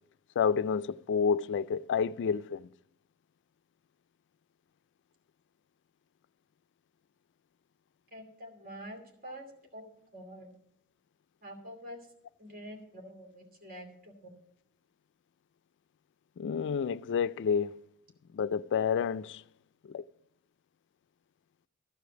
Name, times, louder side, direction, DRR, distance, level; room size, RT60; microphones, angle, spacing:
voice 1, 0.4-2.7 16.4-17.8 18.3-19.4 19.9-20.0, left 6 dB, 55° left, 0.3 m, -29 dB
voice 2, 8.1-9.4 9.7-10.5 11.4-12.0 12.4-14.4, equal, 45° right, 2.6 m, -46 dB
14.5 x 5.1 x 8.0 m
head